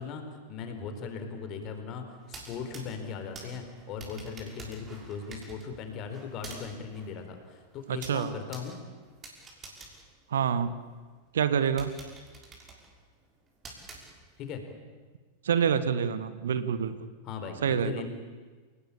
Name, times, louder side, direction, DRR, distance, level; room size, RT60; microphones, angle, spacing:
voice 1, 0.0-8.8 14.4-14.6 17.2-18.1, left 5 dB, 35° left, 6 dB, 4.3 m, -38 dB
sound 1, 2.2-11.0 11.4-11.5 11.8-14.6, right 3 dB, 25° right, 6.2 m, -49 dB
voice 2, 7.9-8.3 10.3-10.7 11.3-11.9 15.4-17.1 17.6-18.0, right 7 dB, 65° right, 13 dB, 1.4 m, -27 dB
28.5 x 18.5 x 8.9 m, 1.4 s
figure-of-eight pair, 90°, 0 cm